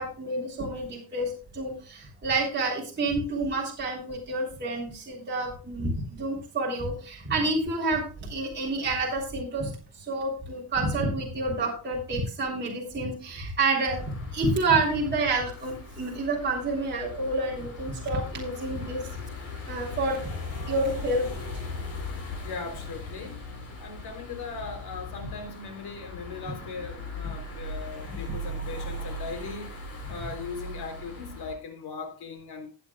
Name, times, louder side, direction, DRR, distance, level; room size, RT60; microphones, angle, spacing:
voice 1, 0.0-19.1 19.7-20.3 20.7-21.3, right 2 dB, 25° right, 3.4 m, -29 dB
sound 1, 14.0-31.6, left 2 dB, 35° left, 3.8 m, -39 dB
voice 2, 22.2-23.4 23.8-29.7 30.1-32.7, left 4 dB, 75° left, 3.5 m, -39 dB
18.5 x 8.1 x 2.3 m
cardioid pair, 160°, 39 cm